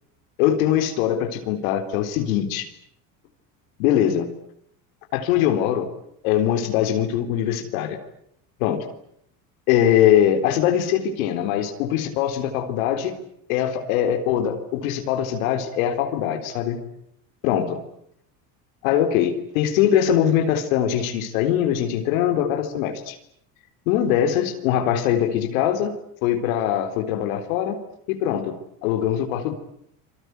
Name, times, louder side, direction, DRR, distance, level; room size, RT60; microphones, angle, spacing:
voice 1, 0.4-2.7 3.8-4.3 5.1-5.9 6.2-8.0 8.6-8.8 9.7-13.2 13.5-16.8 17.4-17.8 18.8-23.2 23.9-25.9 26.2-27.8 28.1-28.6 28.8-29.5, left 10 dB, 80° left, 6 dB, 4.0 m, -22 dB
27.5 x 25.0 x 8.2 m, 0.72 s
supercardioid pair, 115°, 41 cm